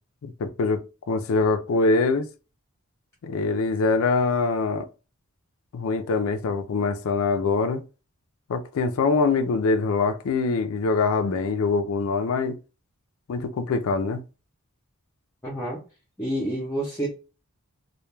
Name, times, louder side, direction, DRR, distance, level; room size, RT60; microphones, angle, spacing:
voice 1, 0.2-2.3 3.2-4.9 5.7-7.8 8.5-12.6 13.3-14.2, left 4 dB, 65° left, 0.4 m, -24 dB
voice 2, 15.4-15.8 16.2-17.1, right 1 dB, 15° left, 0.6 m, -28 dB
2.2 x 2.2 x 3.0 m
head